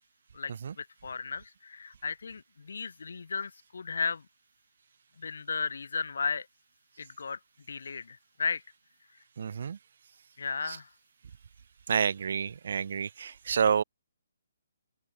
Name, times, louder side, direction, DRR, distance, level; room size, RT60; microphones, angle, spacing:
voice 1, 0.3-4.3 5.2-6.5 7.0-7.4 7.7-8.6 10.4-10.9, left 5 dB, 65° left, 1.1 m, -35 dB
voice 2, 9.4-9.8 11.9-13.8, right 7 dB, 45° right, 0.4 m, -28 dB
open air
hypercardioid pair, 180°, 0 cm